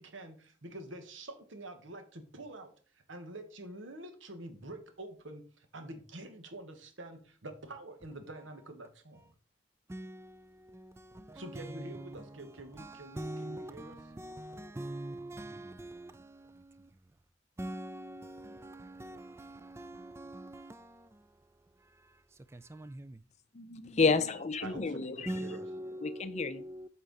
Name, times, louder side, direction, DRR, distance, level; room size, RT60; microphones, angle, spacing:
voice 1, 0.0-9.3 11.3-14.0 24.6-25.6, right 2 dB, 80° right, 1.3 m, -47 dB
voice 2, 9.9-17.0 17.6-23.2 25.3-26.9, right 1 dB, 15° right, 0.3 m, -44 dB
voice 3, 23.5-25.3 26.0-26.6, left 4 dB, 35° left, 0.6 m, -30 dB
8.4 x 4.4 x 4.0 m
head